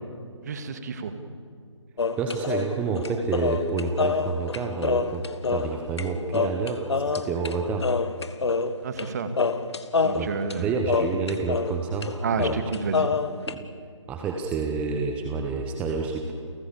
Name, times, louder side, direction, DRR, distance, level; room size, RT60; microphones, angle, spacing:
voice 1, 0.4-1.1 8.8-9.3 10.0-10.7 12.2-13.1, right 5 dB, 35° right, 9 dB, 2.1 m, -30 dB
sound 1, 2.0-6.1 6.3-7.5 7.8-9.1 9.4-11.7 12.0-12.1 12.4-13.5, left 4 dB, 60° left, 1.7 m, -26 dB
voice 2, 2.2-7.9 10.1-12.6 13.5-13.7 14.1-16.3, right 4 dB, 10° right, 3 dB, 1.1 m, -29 dB
30.0 x 18.0 x 8.6 m, 2.4 s
figure-of-eight pair, 155°, 16 cm